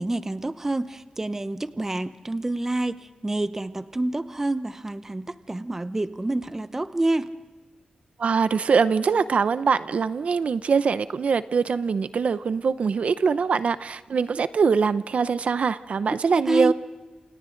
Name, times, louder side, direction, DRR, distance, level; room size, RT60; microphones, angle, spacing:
voice 1, 0.0-7.3 16.3-16.7, right 2 dB, 20° right, 12 dB, 0.8 m, -27 dB
voice 2, 8.2-16.7, right 5 dB, 65° right, 13 dB, 0.6 m, -23 dB
28.5 x 28.0 x 3.9 m, 1.2 s
wide cardioid pair, 135°, 2 cm